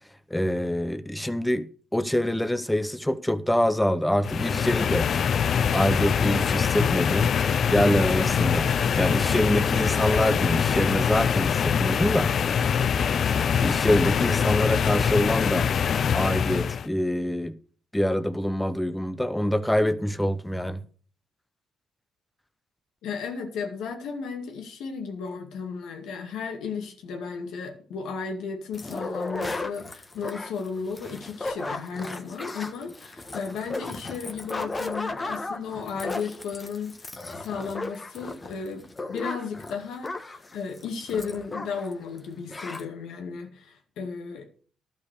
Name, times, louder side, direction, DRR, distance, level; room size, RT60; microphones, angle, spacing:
voice 1, 0.3-5.1 5.7-7.3 7.7-8.7 9.0-12.3 13.6-15.7 16.1-17.6 17.9-20.8, equal, 5° left, 0.8 m, -25 dB
sound 1, 4.2-16.9, left 7 dB, 55° left, 0.4 m, -24 dB
voice 2, 23.0-37.1 37.4-44.5, left 5 dB, 80° left, 2.1 m, -34 dB
sound 2, 28.7-41.9 42.2-42.3 42.5-42.8, left 2 dB, 25° left, 1.3 m, -35 dB
12.0 x 5.7 x 6.6 m
cardioid pair, 90°, 0 cm